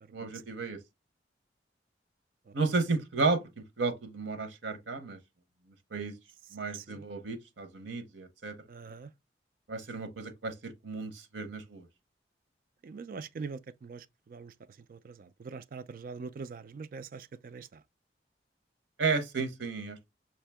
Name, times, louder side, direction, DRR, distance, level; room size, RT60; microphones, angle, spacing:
voice 1, 0.1-0.8 2.5-5.2 5.9-6.1 6.5-8.5 9.7-11.9 19.0-20.0, right 4 dB, 90° right, 0.8 m, -33 dB
voice 2, 6.7-7.0 8.7-9.1 12.8-14.5 14.9-17.8, right 5 dB, 50° right, 0.3 m, -43 dB
5.8 x 2.7 x 3.4 m
head